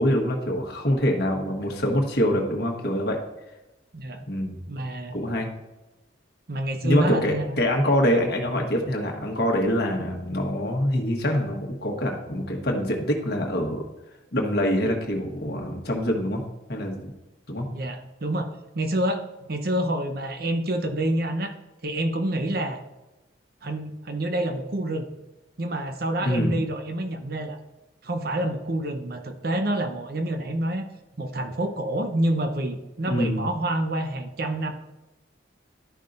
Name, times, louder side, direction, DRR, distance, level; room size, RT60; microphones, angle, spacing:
voice 1, 0.0-3.2 4.3-4.7 5.1-5.5 6.8-13.9 14.3-16.4 16.7-17.1 17.5-17.6 26.2-26.6 33.1-33.5, equal, 55° left, 1 dB, 1.3 m, -25 dB
voice 2, 4.7-5.2 6.5-8.0 17.7-21.5 21.8-22.8 23.6-25.1 25.6-27.6 28.0-30.9 31.2-34.7, right 1 dB, 55° right, 6 dB, 0.8 m, -28 dB
12.5 x 5.5 x 2.6 m, 1.0 s
head